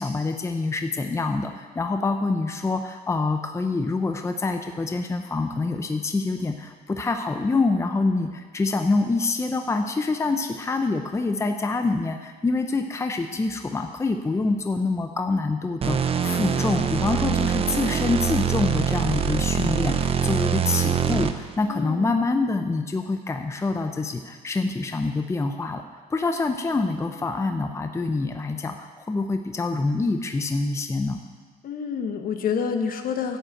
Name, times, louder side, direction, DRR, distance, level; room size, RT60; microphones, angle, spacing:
voice 1, 0.0-25.8 26.1-31.2, left 3 dB, 15° left, 6 dB, 0.7 m, -26 dB
sound 1, 15.8-21.6, right 7 dB, 35° right, 0.7 m, -24 dB
voice 2, 16.3-16.8 21.7-22.2 31.6-33.4, left 6 dB, 55° left, 6 dB, 1.3 m, -29 dB
11.5 x 7.3 x 7.9 m, 1.5 s
cardioid pair, 110°, 17 cm